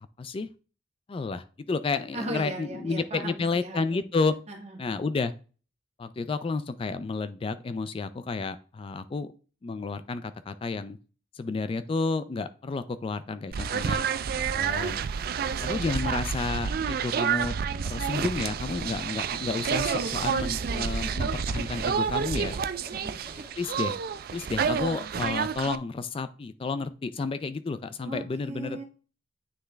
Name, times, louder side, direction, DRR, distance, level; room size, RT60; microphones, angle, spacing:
voice 1, 0.2-0.5 1.1-4.4 4.8-5.3 6.0-9.3 9.6-11.0 11.3-14.0 14.5-15.0 15.6-17.5 17.8-22.6 23.6-24.0 24.3-28.8, left 4 dB, 30° left, 12 dB, 0.3 m, -31 dB
voice 2, 2.1-4.0 4.5-4.8 22.9-23.4 28.0-28.8, right 1 dB, 40° right, 1 dB, 1.7 m, -38 dB
sound 1, 13.5-25.8, right 6 dB, 55° right, 0.4 m, -29 dB
sound 2, 19.5-21.2 21.8-24.0 24.5-25.0, equal, 10° left, 1.3 m, -51 dB
9.3 x 3.4 x 3.3 m, 0.36 s
head